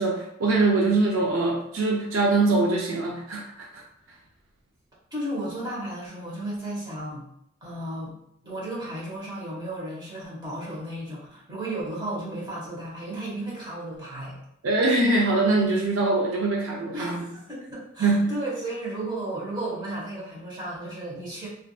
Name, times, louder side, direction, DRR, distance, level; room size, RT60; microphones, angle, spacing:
voice 1, 0.0-3.8 14.6-17.2 18.0-18.3, right 2 dB, 75° right, -1 dB, 0.5 m, -23 dB
voice 2, 5.1-7.2 7.6-8.1 8.4-14.4 16.9-21.5, right 1 dB, 20° right, -6 dB, 1.2 m, -34 dB
3.4 x 2.5 x 2.3 m, 0.74 s
head